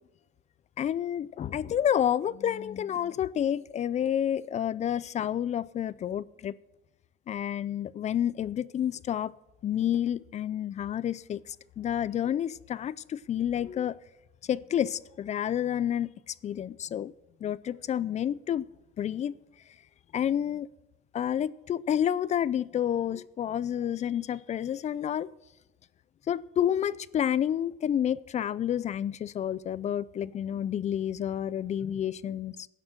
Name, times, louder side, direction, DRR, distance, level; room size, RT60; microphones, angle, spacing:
voice 1, 0.8-6.5 7.3-9.3 9.6-14.0 14.5-17.1 17.4-18.7 19.0-19.4 20.1-20.7 21.1-25.3 26.3-32.7, left 10 dB, 35° left, 0.4 m, -29 dB
16.0 x 6.1 x 6.4 m
cardioid pair, 125°, 21 cm